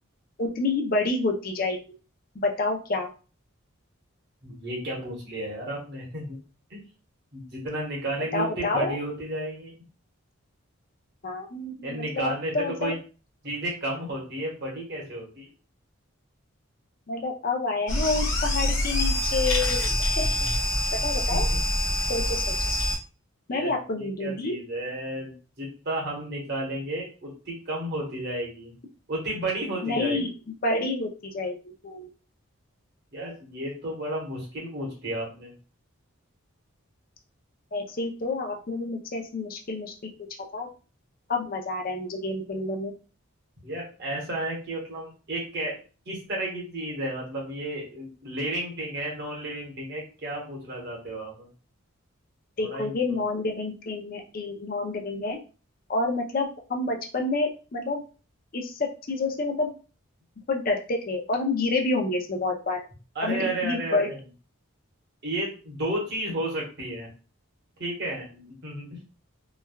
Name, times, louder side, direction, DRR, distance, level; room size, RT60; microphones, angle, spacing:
voice 1, 0.4-1.8 2.4-3.1 8.3-9.0 11.2-12.9 17.1-20.3 21.0-21.5 22.1-22.4 23.5-24.6 29.8-30.3 30.6-31.6 31.8-32.1 37.7-39.9 40.5-40.7 41.3-42.9 52.6-55.4 55.9-58.0 58.5-59.7 60.5-62.8 63.2-64.1, left 3 dB, 40° left, 2 dB, 0.5 m, -28 dB
voice 2, 4.4-6.4 6.7-6.8 7.3-9.7 11.8-13.0 13.4-15.5 21.3-21.6 23.5-23.7 24.0-28.7 29.1-30.2 33.1-35.5 43.6-45.8 46.1-51.5 52.6-53.2 63.1-64.2 65.2-67.1 67.8-69.0, right 1 dB, 50° right, -3 dB, 1.0 m, -32 dB
sound 1, 17.9-23.0, left 1 dB, 55° left, 0.9 m, -25 dB
3.1 x 2.2 x 2.2 m, 0.36 s
head